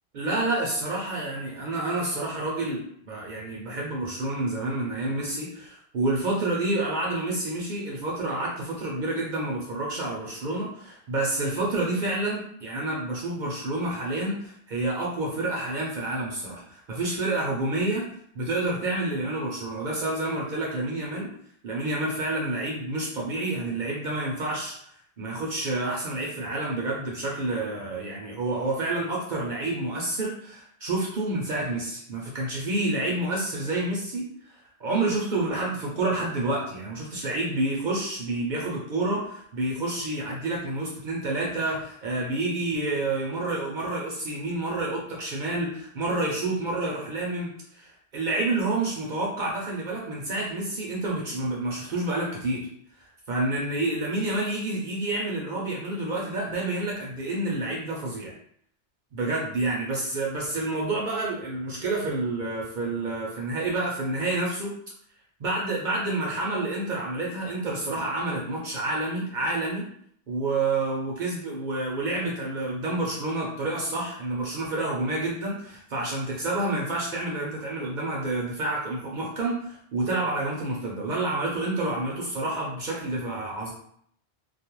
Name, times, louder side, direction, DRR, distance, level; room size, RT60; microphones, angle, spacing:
voice 1, 0.1-18.0 18.3-21.3 21.6-24.8 25.2-52.7 53.0-58.3 59.1-64.7 65.4-69.9 70.3-83.7, right 2 dB, 60° right, -3 dB, 0.5 m, -29 dB
2.3 x 2.0 x 2.9 m, 0.67 s
omnidirectional pair, 1.1 m